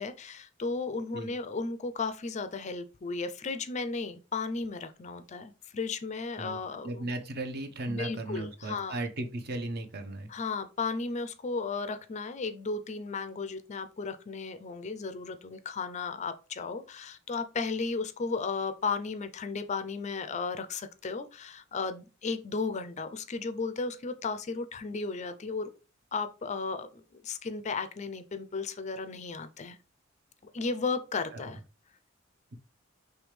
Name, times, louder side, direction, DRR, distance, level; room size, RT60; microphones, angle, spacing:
voice 1, 0.0-7.1 7.9-9.0 10.3-25.7 26.1-29.8 30.5-31.6, left 4 dB, 35° left, 0.4 m, -34 dB
voice 2, 6.8-10.3 31.3-31.5, right 2 dB, 50° right, 0.7 m, -36 dB
5.1 x 3.3 x 3.2 m
head